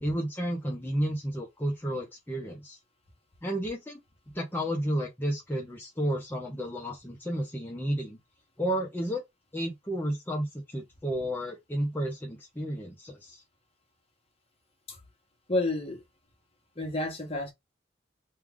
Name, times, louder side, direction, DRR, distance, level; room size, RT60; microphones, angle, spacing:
voice 1, 0.0-2.8 3.4-4.0 4.3-8.2 8.6-9.2 9.5-13.4, equal, 10° left, 0.7 m, -32 dB
voice 2, 15.5-16.0 16.8-17.5, left 2 dB, 35° left, 1.2 m, -30 dB
3.2 x 2.4 x 3.6 m
head